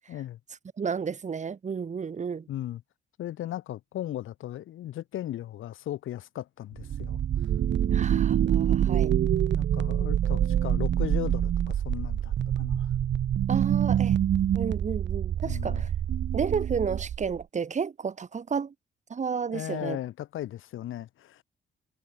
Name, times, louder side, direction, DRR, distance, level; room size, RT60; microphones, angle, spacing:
voice 1, 0.1-0.4 2.5-2.8 3.2-7.2 7.9-8.2 9.5-12.9 15.4-15.9 19.5-21.4, left 13 dB, 85° left, 5.5 m, -37 dB
voice 2, 0.8-2.5 7.9-9.2 13.5-14.2 14.5-15.9 16.3-18.7 19.1-20.0, right 6 dB, 35° right, 2.2 m, -32 dB
sound 1, 6.8-17.4, right 10 dB, 65° right, 2.9 m, -26 dB
cardioid pair, 110°, 20 cm